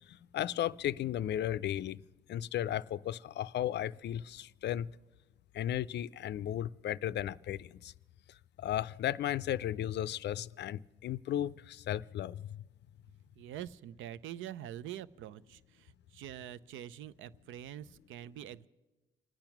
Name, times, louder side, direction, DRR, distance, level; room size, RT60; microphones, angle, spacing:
voice 1, 0.1-2.0 2.3-4.9 5.5-7.9 8.6-12.6, left 11 dB, 60° left, 18 dB, 0.4 m, -35 dB
voice 2, 13.4-18.7, right 11 dB, 80° right, 18 dB, 0.5 m, -45 dB
26.0 x 8.9 x 5.9 m, 1.1 s
cardioid pair, 90°, 20 cm